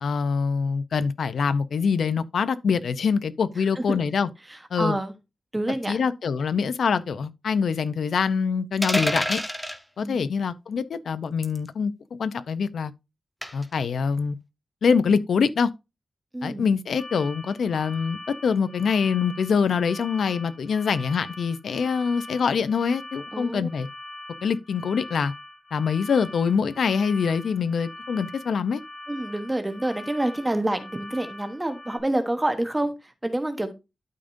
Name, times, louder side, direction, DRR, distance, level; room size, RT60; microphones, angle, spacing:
voice 1, 0.0-4.3 4.7-5.0 5.9-9.4 10.0-11.9 12.2-12.9 13.5-14.4 14.8-15.7 16.4-23.9 24.4-25.3 25.7-28.8, left 6 dB, 85° left, 0.6 m, -24 dB
voice 2, 4.5-5.1 5.5-6.0 10.0-10.3 16.3-16.7 23.3-23.7 29.1-33.7, right 1 dB, 15° right, 1.1 m, -28 dB
sound 1, 8.8-9.8 11.4-11.7 13.4-13.7, equal, ahead, 1.1 m, -27 dB
sound 2, 17.0-32.0, left 2 dB, 30° left, 2.8 m, -42 dB
12.0 x 5.1 x 2.6 m
wide cardioid pair, 155°, 0 cm